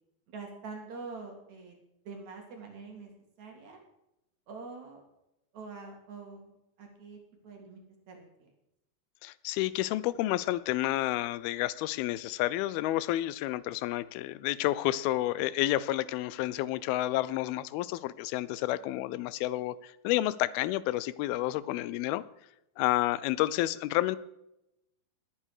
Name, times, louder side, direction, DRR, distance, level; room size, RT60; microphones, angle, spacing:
voice 1, 0.3-1.8 2.0-3.1 3.4-3.8 4.5-5.0 5.5-8.5, right 4 dB, 55° right, 2 dB, 3.3 m, -45 dB
voice 2, 9.2-22.2 22.8-24.2, left 15 dB, 85° left, 18 dB, 2.5 m, -30 dB
20.0 x 8.8 x 4.8 m, 0.86 s
omnidirectional pair, 4.3 m